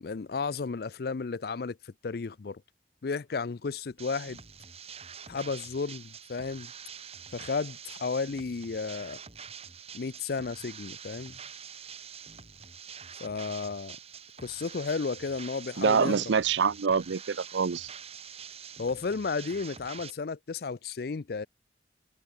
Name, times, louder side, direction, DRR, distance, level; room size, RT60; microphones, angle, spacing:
voice 1, 0.0-2.6 3.0-4.4 5.3-6.7 7.3-9.2 9.9-11.4 13.2-14.0 14.4-16.2 18.8-21.5, left 4 dB, 60° left, 0.5 m, -33 dB
sound 1, 4.0-20.1, right 7 dB, 35° right, 3.0 m, -46 dB
voice 2, 15.8-17.9, right 6 dB, 85° right, 0.5 m, -25 dB
head